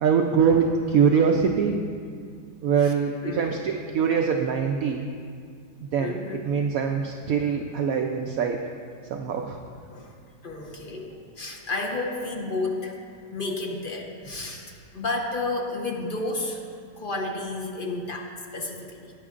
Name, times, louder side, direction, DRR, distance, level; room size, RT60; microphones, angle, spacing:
voice 1, 0.0-1.8 2.6-5.1 5.9-8.6 9.1-9.6, right 6 dB, 70° right, 3 dB, 0.9 m, -23 dB
voice 2, 6.0-6.5 9.9-10.1 10.4-16.6 17.0-19.1, left 2 dB, 40° left, 0 dB, 0.9 m, -32 dB
15.5 x 9.5 x 2.5 m, 2.2 s
omnidirectional pair, 1.8 m